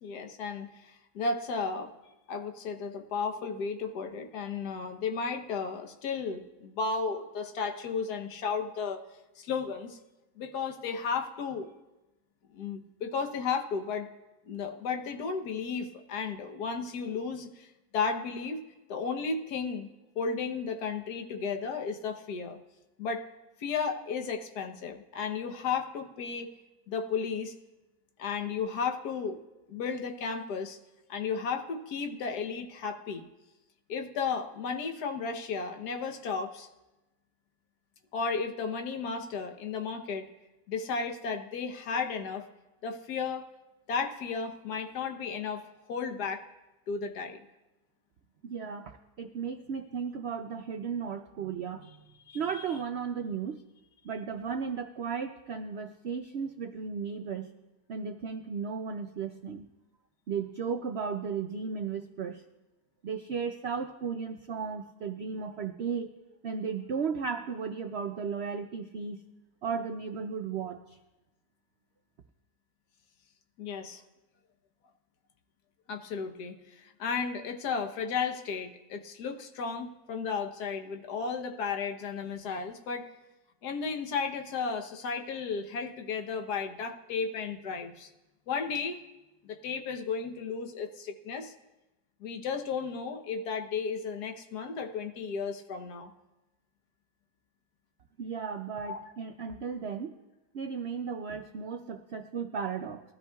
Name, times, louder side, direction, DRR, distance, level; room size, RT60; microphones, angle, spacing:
voice 1, 0.0-1.9 2.3-9.0 9.4-10.0 10.4-11.7 12.5-14.1 14.5-18.6 18.9-19.9 20.1-22.6 23.0-23.2 23.6-26.5 26.9-27.5 28.2-29.4 29.7-30.8 31.1-33.2 33.9-36.7 38.1-40.3 40.7-42.5 42.8-43.5 43.9-45.6 45.9-46.4 46.9-47.4 52.3-52.6 73.6-74.0 75.9-83.1 83.6-88.1 88.5-89.0 89.4-91.5 92.2-96.1 98.9-99.0, left 5 dB, 75° left, 5 dB, 1.5 m, -34 dB
voice 2, 48.4-48.9 49.2-51.9 52.3-53.6 54.0-57.5 57.9-59.7 60.3-62.4 63.0-66.1 66.4-69.2 69.6-71.0 98.2-100.2 100.5-103.0, right 6 dB, 65° right, 6 dB, 0.6 m, -35 dB
21.0 x 13.5 x 2.3 m, 1.0 s
omnidirectional pair, 1.7 m